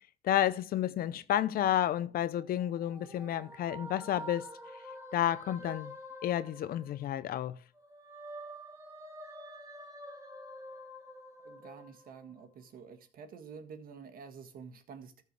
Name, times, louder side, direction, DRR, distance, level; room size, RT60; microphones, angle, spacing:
voice 1, 0.2-4.5 5.1-5.9 6.2-7.6, left 11 dB, 60° left, 0.7 m, -31 dB
sound 1, 2.4-7.4 7.8-12.5, equal, 15° right, 2.4 m, -48 dB
voice 2, 11.4-15.2, right 6 dB, 60° right, 1.8 m, -49 dB
13.5 x 6.5 x 3.4 m
cardioid pair, 110°, 17 cm